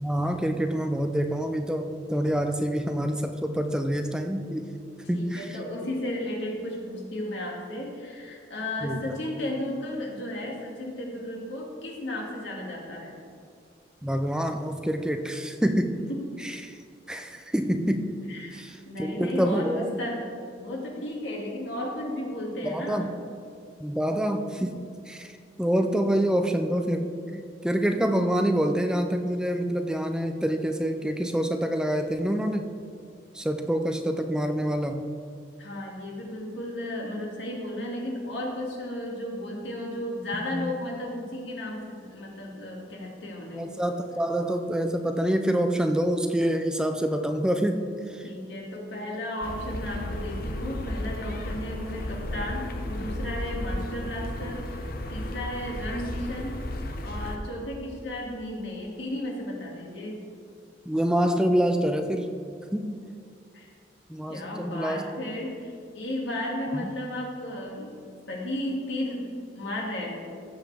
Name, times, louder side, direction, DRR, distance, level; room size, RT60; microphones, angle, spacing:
voice 1, 0.0-4.7 5.1-5.6 8.8-9.2 14.0-16.0 16.4-16.8 17.1-18.1 18.5-19.9 22.6-23.1 23.8-32.7 33.3-35.1 40.5-40.7 43.5-48.2 60.9-62.4 62.7-63.0 64.1-65.0 66.8-66.9, equal, 5° right, 6 dB, 0.4 m, -27 dB
voice 2, 5.1-13.2 16.1-16.2 18.3-23.1 35.6-43.7 48.2-56.5 57.0-60.2 63.5-63.7 64.3-68.0 68.3-69.2 69.5-70.3, left 1 dB, 90° left, -2 dB, 2.3 m, -34 dB
sound 1, 49.4-57.4, left 1 dB, 55° left, 0.8 m, -34 dB
15.5 x 7.4 x 3.5 m, 2.3 s
head